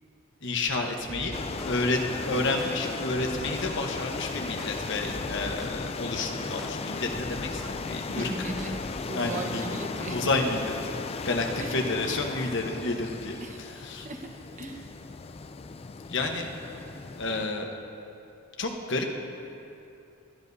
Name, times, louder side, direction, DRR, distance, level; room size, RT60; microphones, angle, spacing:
voice 1, 0.4-8.5 9.1-9.7 10.1-10.7 11.2-14.1 16.1-16.5 17.2-17.7 18.6-19.1, left 2 dB, 60° left, 3 dB, 1.1 m, -30 dB
sound 1, 1.1-9.1, equal, ahead, 0.9 m, -43 dB
sound 2, 1.3-17.5, left 4 dB, 30° left, 0.4 m, -36 dB
voice 2, 8.1-8.8 9.1-10.3 11.6-11.8 13.4-14.3 14.6-14.9, right 2 dB, 35° right, 3 dB, 1.1 m, -37 dB
20.0 x 13.5 x 2.7 m, 2.7 s
head